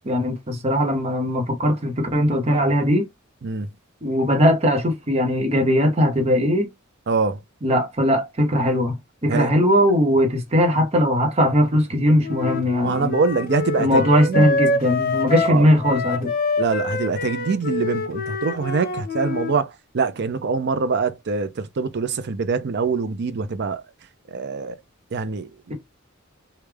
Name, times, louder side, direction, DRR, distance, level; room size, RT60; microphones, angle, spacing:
voice 1, 0.0-3.1 4.0-6.7 7.6-9.0 9.2-13.1 13.8-16.3, equal, 30° right, 0.8 m, -19 dB
voice 2, 7.1-7.4 9.3-9.5 12.8-14.5 15.4-15.7 16.6-23.8 24.3-24.8 25.1-25.7, right 4 dB, 55° right, 0.5 m, -24 dB
Wind instrument woodwind instrument, 12.2-19.5, left 3 dB, 45° left, 0.6 m, -26 dB
3.3 x 2.3 x 3.3 m
head